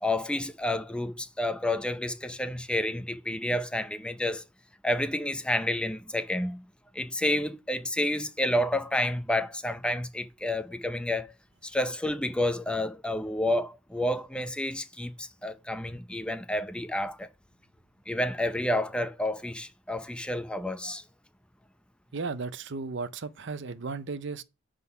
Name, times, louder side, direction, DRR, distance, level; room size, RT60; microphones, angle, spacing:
voice 1, 0.0-4.4 4.8-6.6 6.9-11.3 11.6-17.3 18.1-21.0, left 1 dB, 5° left, 0.6 m, -30 dB
voice 2, 22.1-24.4, right 4 dB, 60° right, 0.6 m, -35 dB
9.6 x 3.9 x 5.7 m
head